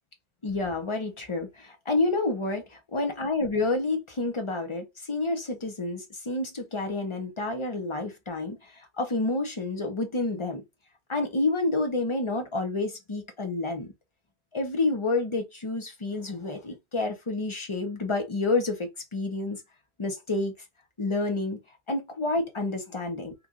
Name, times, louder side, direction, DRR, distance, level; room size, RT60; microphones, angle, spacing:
voice 1, 0.4-2.6 2.9-10.6 11.1-13.9 14.5-19.6 20.0-20.5 21.0-21.6 21.9-23.3, left 2 dB, 30° left, 0.9 m, -29 dB
3.0 x 2.6 x 3.7 m
omnidirectional pair, 1.1 m